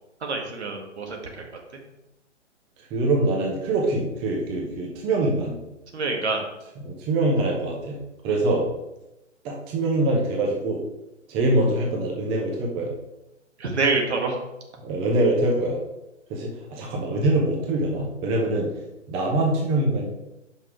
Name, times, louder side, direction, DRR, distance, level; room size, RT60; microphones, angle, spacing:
voice 1, 0.2-1.4 5.9-6.4 13.6-14.4, right 3 dB, 60° right, 1 dB, 1.8 m, -26 dB
voice 2, 2.9-5.6 6.8-8.0 8.2-8.7 9.4-10.8 11.3-12.9 14.8-15.8 16.3-18.7 19.1-20.1, right 2 dB, 15° right, -1 dB, 0.8 m, -24 dB
6.0 x 5.5 x 4.6 m, 0.92 s
figure-of-eight pair, 125°, 37 cm